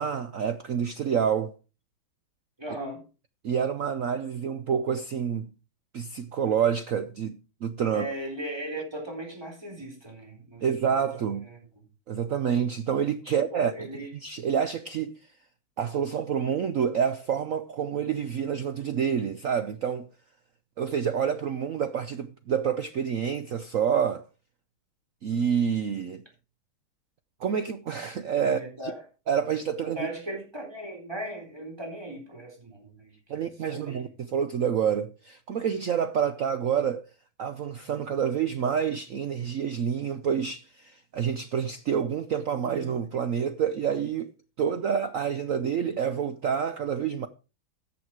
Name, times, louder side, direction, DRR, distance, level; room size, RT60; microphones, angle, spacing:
voice 1, 0.0-1.6 3.4-5.5 5.9-8.1 10.6-11.5 12.1-15.2 15.8-20.1 20.8-24.2 25.2-26.2 27.4-28.6 29.3-30.1 33.3-37.1 37.4-44.3 44.6-47.3, right 7 dB, 75° right, 0.7 m, -28 dB
voice 2, 2.6-3.0 7.9-11.8 13.2-14.1 28.4-29.0 29.7-34.1 42.5-43.0, right 1 dB, 10° right, 4.1 m, -38 dB
14.0 x 7.6 x 4.7 m
omnidirectional pair, 2.2 m